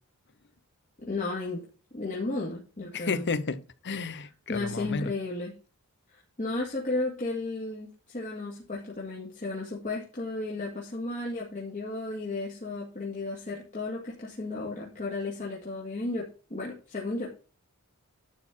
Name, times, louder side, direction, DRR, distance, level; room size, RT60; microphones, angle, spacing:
voice 1, 1.0-1.7 1.9-3.2 4.5-5.5 6.1-17.3, left 2 dB, 35° left, 2.4 m, -34 dB
voice 2, 2.9-5.1, left 4 dB, 55° left, 0.9 m, -32 dB
11.5 x 4.3 x 7.4 m
head